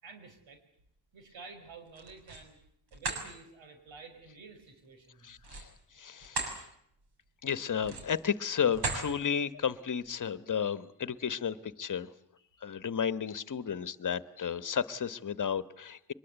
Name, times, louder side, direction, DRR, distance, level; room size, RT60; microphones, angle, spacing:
voice 1, 0.0-0.6 1.1-2.6 2.9-5.3, right 4 dB, 90° right, 7 dB, 5.7 m, -50 dB
sound 1, 1.9-2.5 2.9-3.2 5.4-6.6 7.0-7.2 7.8-8.2 8.7-9.1, right 3 dB, 55° right, 6.2 m, -36 dB
voice 2, 5.2-6.6 7.4-12.1 12.6-16.1, left 7 dB, 45° left, 14 dB, 1.3 m, -33 dB
24.0 x 22.0 x 8.3 m, 0.74 s
wide cardioid pair, 120°, 45 cm